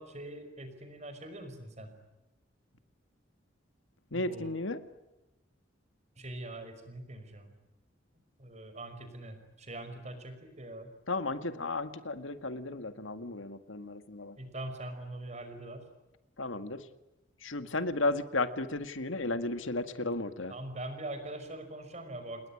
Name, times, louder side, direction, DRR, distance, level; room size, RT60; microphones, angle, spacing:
voice 1, 0.0-1.9 4.1-4.6 6.2-7.5 8.4-10.9 14.4-15.9 20.5-22.5, right 1 dB, 35° right, 8 dB, 5.5 m, -43 dB
voice 2, 4.1-4.8 11.1-14.4 16.4-16.8 17.4-20.5, left 2 dB, 85° left, 10 dB, 1.9 m, -34 dB
28.5 x 20.5 x 10.0 m, 0.95 s
head